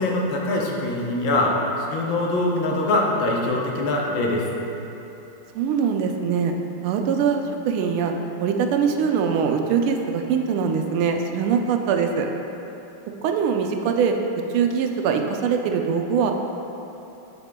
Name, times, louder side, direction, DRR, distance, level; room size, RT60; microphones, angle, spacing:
voice 1, 0.0-4.4, left 2 dB, 70° left, -1 dB, 1.5 m, -23 dB
voice 2, 5.5-6.5 6.8-7.4 7.7-8.1 8.4-12.3 13.2-14.2 14.5-16.3, right 6 dB, 90° right, 4 dB, 1.5 m, -22 dB
7.8 x 7.1 x 2.2 m, 3.0 s
omnidirectional pair, 2.3 m